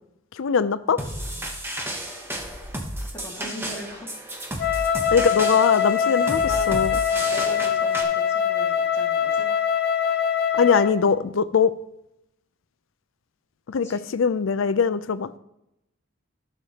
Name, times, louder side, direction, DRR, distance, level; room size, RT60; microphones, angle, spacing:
voice 1, 0.3-1.0 5.1-6.4 6.7-7.0 10.5-11.7 13.7-15.3, left 6 dB, 80° left, 15 dB, 0.4 m, -21 dB
sound 1, 1.0-8.0, right 1 dB, 10° right, 0.9 m, -33 dB
voice 2, 3.1-4.1 6.3-6.7 7.1-9.5 13.8-14.1, equal, 15° left, -3 dB, 1.8 m, -39 dB
Wind instrument woodwind instrument, 4.6-11.0, left 8 dB, 50° left, 0.7 m, -23 dB
14.0 x 6.6 x 2.9 m, 0.86 s
head